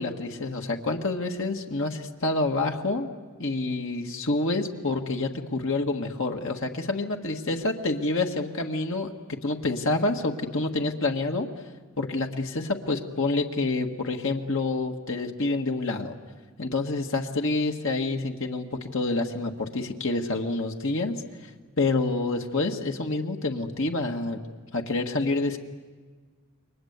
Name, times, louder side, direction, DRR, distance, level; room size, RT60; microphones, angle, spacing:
voice 1, 0.0-3.1 3.4-11.5 12.0-16.2 16.6-21.5 21.8-24.4 24.7-25.6, left 2 dB, 65° left, 2 dB, 1.7 m, -28 dB
29.5 x 23.5 x 8.1 m, 1.5 s
head